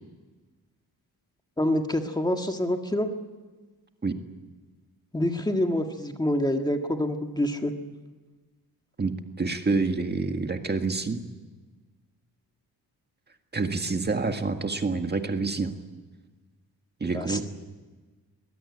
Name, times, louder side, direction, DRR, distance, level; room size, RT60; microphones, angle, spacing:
voice 1, 1.6-3.1 5.1-7.7 17.1-17.4, left 1 dB, 10° left, 4 dB, 1.7 m, -26 dB
voice 2, 9.0-11.2 13.5-15.8 17.0-17.4, right 3 dB, 25° right, 5 dB, 1.8 m, -27 dB
23.0 x 21.0 x 9.8 m, 1.3 s
wide cardioid pair, 135°, 38 cm